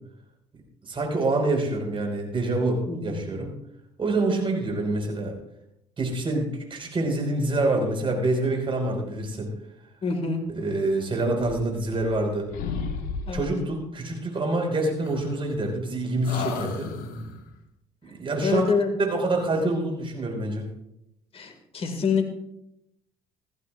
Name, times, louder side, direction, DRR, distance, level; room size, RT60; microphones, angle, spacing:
voice 1, 0.8-3.5 4.0-5.4 6.0-9.5 10.5-12.5 13.3-16.9 18.0-18.6 19.0-20.6, right 2 dB, 35° right, 2 dB, 5.1 m, -26 dB
voice 2, 2.9-3.2 10.0-10.5 13.3-13.5 18.4-18.9 21.3-22.3, left 5 dB, 40° left, 6 dB, 2.3 m, -26 dB
sound 1, 11.4-12.2 12.5-13.7 15.0-15.9 16.2-17.5, left 5 dB, 75° left, 1.7 m, -34 dB
18.5 x 14.5 x 2.6 m, 0.80 s
supercardioid pair, 65°, 15 cm